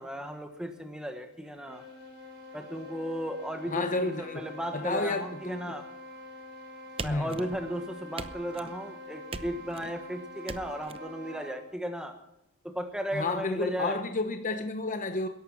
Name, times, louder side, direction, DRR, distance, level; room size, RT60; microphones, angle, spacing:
voice 1, 0.0-1.8 2.5-5.8 7.0-12.1 12.6-14.0, equal, 5° right, 5 dB, 1.3 m, -35 dB
sound 1, 1.4-11.7, left 1 dB, 55° right, 4.6 m, -46 dB
voice 2, 3.7-4.5 4.7-5.6 7.0-7.4 13.1-15.3, left 3 dB, 35° left, 7 dB, 0.9 m, -31 dB
sound 2, 7.0-7.8 8.2-8.8 9.3-9.9 10.5-11.0, right 3 dB, 25° right, 0.7 m, -40 dB
20.5 x 11.5 x 6.1 m, 0.82 s
head